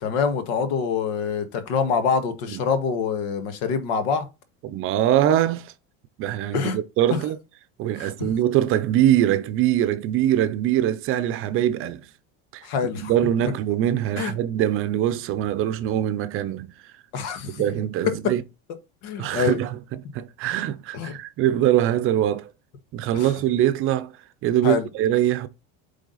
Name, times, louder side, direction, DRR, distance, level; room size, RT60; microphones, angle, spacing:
voice 1, 0.0-4.3 6.5-6.8 8.0-8.3 12.6-13.1 14.2-14.3 17.1-17.6 18.0-18.3 19.0-19.6 20.9-21.2 23.1-23.3 24.6-24.9, left 6 dB, 70° left, 1.7 m, -25 dB
voice 2, 4.6-5.7 6.2-7.4 7.8-12.0 12.5-16.7 17.5-18.4 19.2-19.7 20.1-22.5 22.9-24.2 24.4-25.5, right 12 dB, 40° right, 0.7 m, -23 dB
8.3 x 3.6 x 4.0 m
cardioid pair, 160°, 32 cm